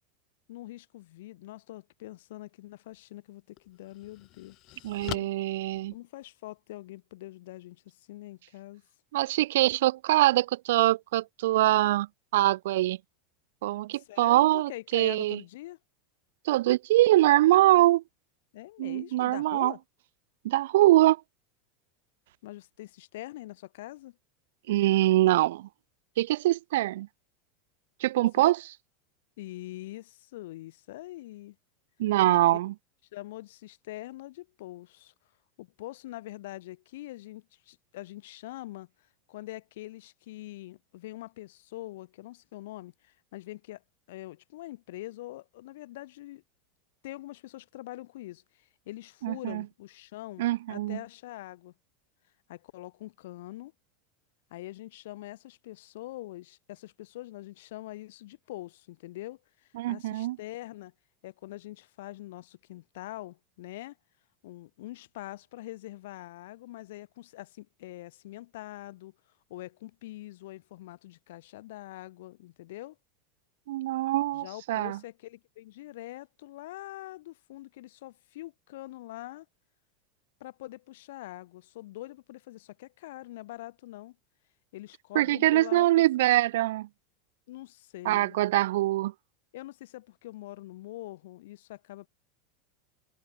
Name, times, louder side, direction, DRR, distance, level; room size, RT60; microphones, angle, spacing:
voice 1, 0.5-5.3 5.9-8.8 13.9-15.8 18.5-19.8 22.4-24.2 28.4-28.5 29.4-31.6 32.2-32.4 33.1-35.1 35.6-38.9 39.3-43.8 44.1-46.4 47.0-51.7 52.5-53.7 54.5-60.9 61.2-64.0 64.4-69.1 69.5-73.0 74.3-79.5 80.4-84.2 84.7-86.0 87.5-88.4 89.5-92.1, left 17 dB, 75° left, 5.4 m, -44 dB
sound 1, 2.8-3.0 3.6-6.6, left 18 dB, 50° left, 4.5 m, -43 dB
voice 2, 4.8-5.9 9.1-12.1 12.3-13.0 13.6-15.4 16.5-18.0 18.8-19.7 20.4-21.2 24.7-25.7 26.2-27.1 28.0-28.7 32.0-32.7 49.2-49.6 50.4-51.0 59.8-60.4 73.7-75.0 85.1-86.9 88.0-89.1, right 16 dB, 75° right, 0.8 m, -23 dB
supercardioid pair, 115°, 0 cm